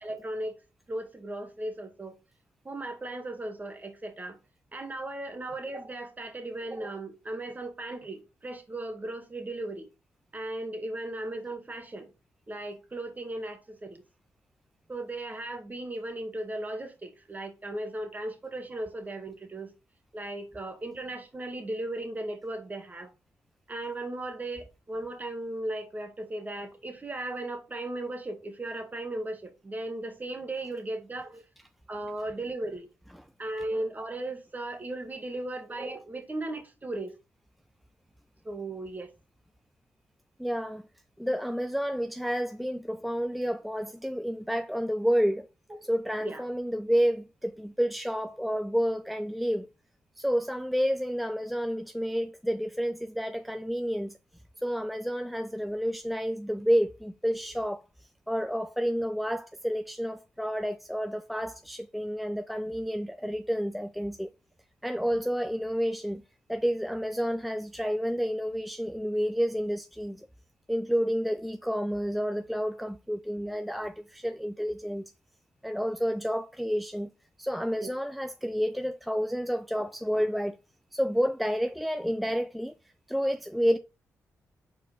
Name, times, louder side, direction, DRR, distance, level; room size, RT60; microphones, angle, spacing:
voice 1, 0.0-0.5 0.9-2.1 2.6-4.4 4.7-9.9 10.3-12.1 12.5-14.0 14.9-19.7 20.1-23.1 23.7-31.4 31.9-32.9 33.4-37.1 38.4-39.1 45.7-45.8 46.2-46.4 77.8-77.9, right 2 dB, 30° right, 1.4 m, -36 dB
voice 2, 40.4-40.8 41.2-45.5 45.8-49.7 50.2-54.2 54.6-57.8 58.3-64.3 64.8-66.2 66.5-70.3 70.7-75.0 75.6-77.1 77.4-80.6 80.9-82.7 83.1-83.8, equal, ahead, 0.4 m, -30 dB
4.4 x 4.2 x 2.8 m
cardioid pair, 60°, 6 cm